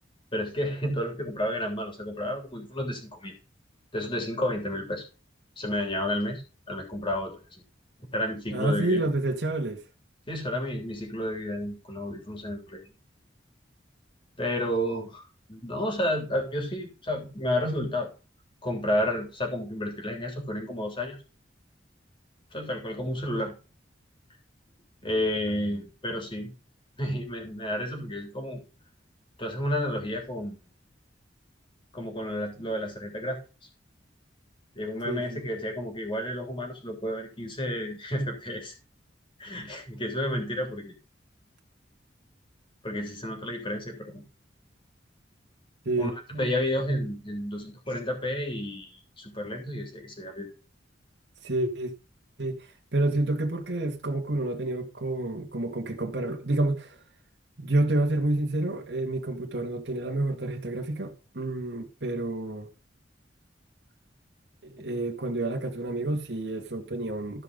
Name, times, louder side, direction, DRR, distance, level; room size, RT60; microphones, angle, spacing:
voice 1, 0.3-3.4 3.9-5.0 5.6-7.6 8.1-9.1 10.3-12.8 14.4-18.1 18.6-21.2 22.5-23.6 25.0-26.5 27.0-28.6 29.4-30.6 31.9-33.4 34.7-38.7 39.4-40.9 42.8-44.2 46.0-50.5, left 1 dB, 30° left, 3.3 m, -31 dB
voice 2, 8.5-9.8 35.0-35.4 45.8-46.1 51.4-51.9 52.4-57.0 57.6-62.7 64.6-67.4, right 2 dB, 65° right, 1.8 m, -29 dB
14.0 x 5.3 x 5.4 m
head